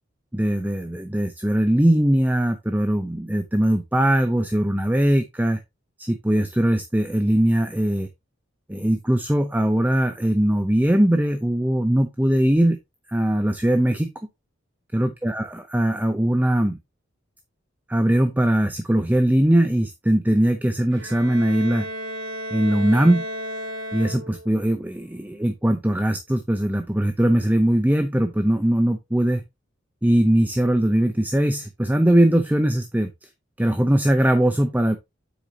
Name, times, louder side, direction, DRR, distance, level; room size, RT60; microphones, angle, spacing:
voice 1, 0.3-5.6 6.0-8.1 8.7-12.8 13.1-14.1 14.9-16.8 17.9-21.9 22.5-23.2 23.9-29.4 30.0-33.3 33.6-35.0, right 1 dB, 10° right, 8 dB, 0.6 m, -20 dB
Bowed string instrument, 20.9-24.6, equal, 80° right, 3.3 m, -33 dB
8.0 x 6.3 x 2.8 m, 0.21 s
head